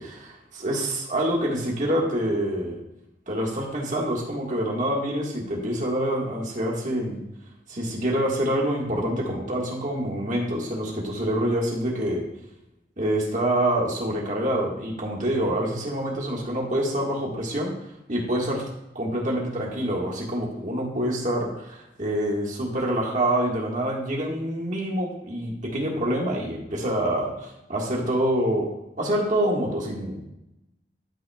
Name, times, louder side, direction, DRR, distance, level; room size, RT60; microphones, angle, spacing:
voice 1, 0.0-2.8 3.3-7.2 7.7-12.2 13.0-17.7 18.1-18.6 18.9-28.7 29.0-30.2, right 1 dB, 45° right, -1 dB, 1.7 m, -26 dB
12.5 x 5.5 x 2.4 m, 0.88 s
head